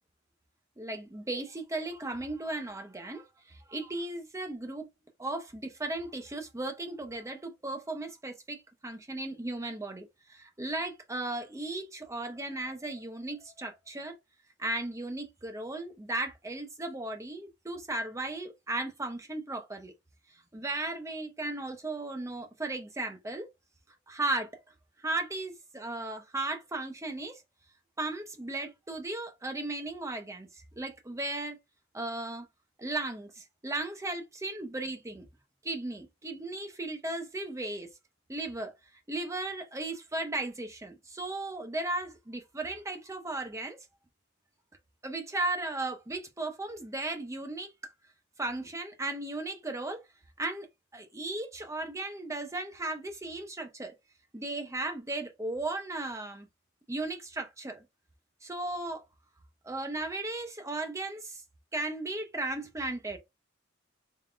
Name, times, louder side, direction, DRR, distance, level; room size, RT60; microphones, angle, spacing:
voice 1, 0.8-3.2 3.7-4.9 5.2-14.2 14.6-19.9 20.5-23.5 24.1-24.5 25.0-27.4 28.0-30.5 30.8-31.6 31.9-32.5 32.8-35.3 35.6-37.9 38.3-38.7 39.1-43.8 45.0-47.7 48.4-50.0 50.4-50.7 50.9-53.9 54.3-56.5 56.9-57.8 58.4-59.0 59.6-61.4 61.7-63.2, right 2 dB, 15° right, 0.7 m, -36 dB
3.7 x 3.5 x 2.5 m
head